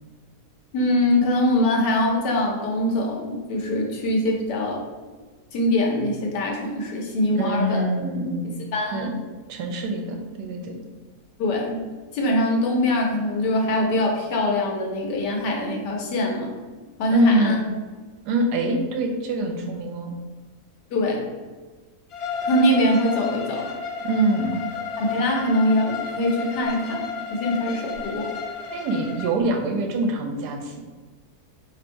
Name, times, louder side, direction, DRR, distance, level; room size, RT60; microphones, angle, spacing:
voice 1, 0.7-4.8 5.5-7.8 8.7-9.0 11.4-11.8 12.1-16.5 17.0-17.6 20.9-21.2 22.4-23.7 25.0-27.0 27.3-28.3, left 1 dB, 85° left, -1 dB, 1.4 m, -23 dB
voice 2, 7.3-8.5 8.9-9.2 9.5-10.8 17.1-17.6 18.2-20.1 24.0-24.6 28.7-30.8, right 2 dB, 85° right, 3 dB, 1.2 m, -24 dB
Bowed string instrument, 22.1-29.3, left 5 dB, 65° left, 0.6 m, -32 dB
3.3 x 2.6 x 4.4 m, 1.3 s
omnidirectional pair, 1.7 m